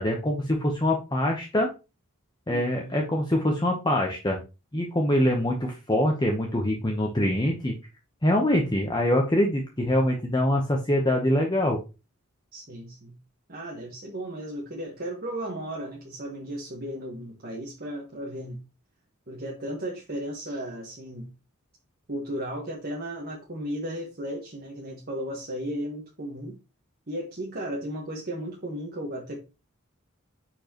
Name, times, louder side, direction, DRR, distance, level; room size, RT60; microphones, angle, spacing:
voice 1, 0.0-1.7 2.5-4.4 4.7-7.7 8.2-11.8, left 1 dB, 20° left, 1 dB, 1.0 m, -24 dB
voice 2, 2.5-3.0 8.6-8.7 12.5-13.2 13.5-18.6 19.3-21.3 22.1-26.6 27.1-29.4, right 1 dB, 45° right, -2 dB, 1.5 m, -35 dB
10.0 x 4.7 x 3.0 m, 0.29 s
head